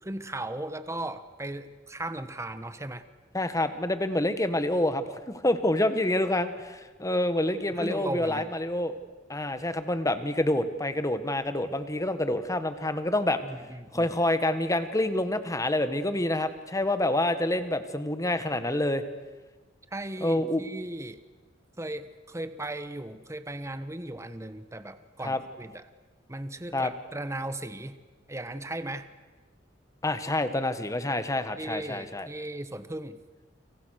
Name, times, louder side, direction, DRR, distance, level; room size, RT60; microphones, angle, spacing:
voice 1, 0.0-3.0 7.7-8.5 13.4-14.1 19.9-21.2 21.8-25.8 26.3-28.0 28.3-29.1 31.6-33.2, right 1 dB, 15° right, 11 dB, 1.3 m, -37 dB
voice 2, 3.3-9.0 9.3-13.4 13.9-19.0 20.2-20.6 25.2-25.4 26.7-26.9 30.0-32.3, left 1 dB, 20° left, 10 dB, 1.6 m, -27 dB
29.5 x 26.5 x 6.6 m, 1.3 s
head